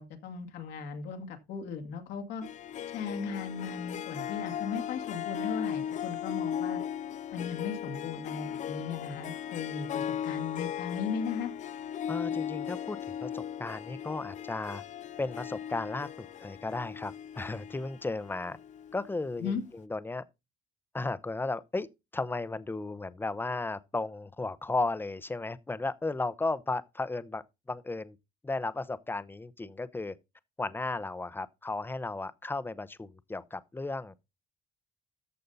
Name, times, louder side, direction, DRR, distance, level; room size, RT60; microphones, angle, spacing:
voice 1, 0.0-2.4 2.9-6.8 7.3-11.5 19.4-19.6, left 6 dB, 85° left, 2.2 m, -37 dB
Harp, 2.4-19.2, left 9 dB, 45° left, 0.5 m, -37 dB
voice 2, 12.1-14.8 15.2-18.6 18.9-20.2 20.9-21.9 22.1-27.4 27.7-28.2 28.4-30.2 30.6-34.1, left 3 dB, 10° left, 0.7 m, -34 dB
14.0 x 5.3 x 4.0 m
cardioid pair, 110°, 17 cm